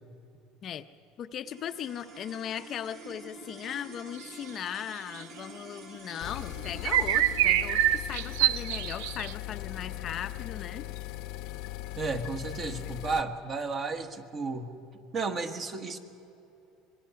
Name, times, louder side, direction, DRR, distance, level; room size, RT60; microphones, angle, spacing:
voice 1, 1.2-10.8, left 9 dB, 40° left, 9 dB, 0.6 m, -38 dB
sound 1, 1.4-11.9, right 2 dB, 50° right, 6.9 m, -49 dB
sound 2, 6.2-13.2, left 15 dB, 70° left, 0.8 m, -39 dB
sound 3, 6.7-9.3, right 13 dB, 90° right, 0.5 m, -25 dB
voice 2, 12.0-14.8 15.1-16.0, right 4 dB, 30° right, 7 dB, 1.5 m, -33 dB
25.0 x 21.5 x 5.8 m, 2.7 s
cardioid pair, 140°, 0 cm